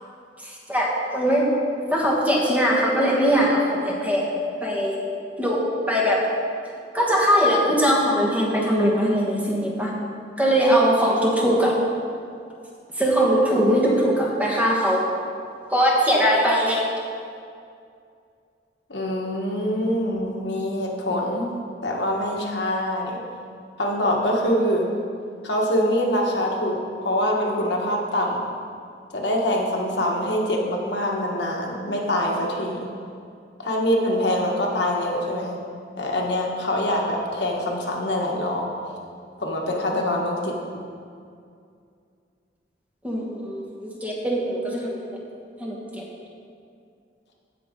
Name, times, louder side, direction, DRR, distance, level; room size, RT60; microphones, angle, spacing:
voice 1, 0.4-1.5 1.9-4.3 4.6-4.9 5.4-5.6 5.9-6.2 6.9-9.9 10.4-11.7 13.0-15.1 15.7-16.8 43.0-45.0 45.6-46.0, equal, 10° right, -3 dB, 1.3 m, -21 dB
voice 2, 18.9-21.5 21.8-23.2 23.8-24.9 25.4-28.4 29.1-32.9 33.6-35.6 36.0-38.7 39.4-40.5, left 1 dB, 80° left, -1 dB, 1.4 m, -24 dB
15.5 x 5.7 x 3.7 m, 2.4 s
head